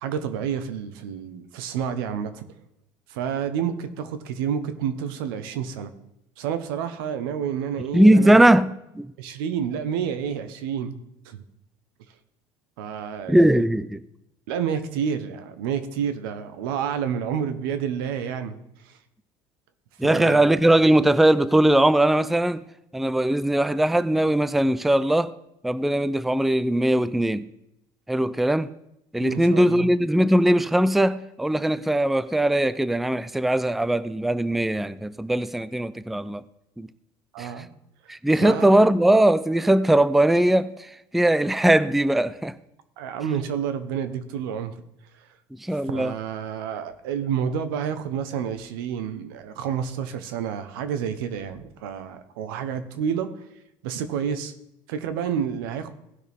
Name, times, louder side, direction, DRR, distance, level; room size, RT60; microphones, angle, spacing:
voice 1, 0.0-2.4 3.1-5.9 6.4-8.4 9.2-10.9 11.2-11.4 12.8-13.6 14.5-18.6 18.8-19.0 20.0-20.5 29.2-29.9 37.3-37.7 38.4-38.9 43.0-44.7 45.2-45.3 45.7-53.5 53.8-54.5 54.9-55.9, right 8 dB, 85° right, 1.1 m, -29 dB
voice 2, 7.9-9.1 13.3-14.0 20.0-22.6 22.9-25.3 25.6-27.5 28.1-28.7 29.1-36.4 36.8-36.9 37.4-37.5 38.1-42.6 45.6-46.1, right 1 dB, ahead, 0.4 m, -20 dB
17.0 x 6.2 x 3.6 m
supercardioid pair, 105°, 11 cm